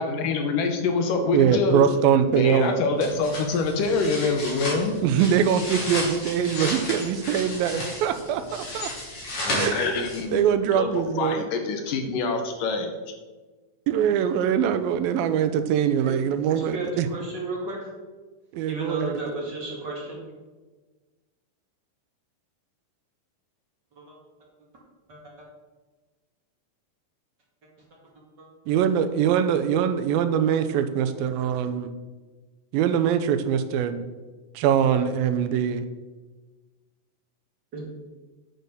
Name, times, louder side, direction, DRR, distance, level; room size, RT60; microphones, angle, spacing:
voice 1, 0.0-1.9 2.3-5.0 9.5-10.4 10.7-10.9 11.2-12.9, left 4 dB, 75° left, 5 dB, 2.5 m, -25 dB
voice 2, 1.3-2.8 5.0-8.4 8.7-8.9 9.5-9.9 10.3-11.5 13.9-17.1 18.5-19.3 28.7-31.9 32.7-34.1 34.6-35.8, right 8 dB, 85° right, 10 dB, 2.5 m, -23 dB
sound 1, 3.0-10.4, left 1 dB, 45° left, 3.3 m, -33 dB
voice 3, 16.4-17.9 18.7-20.2 24.0-24.2 25.1-25.5 28.4-28.5 37.7-37.8, right 2 dB, 35° right, -3 dB, 2.5 m, -34 dB
9.4 x 6.6 x 6.6 m, 1.3 s
omnidirectional pair, 4.1 m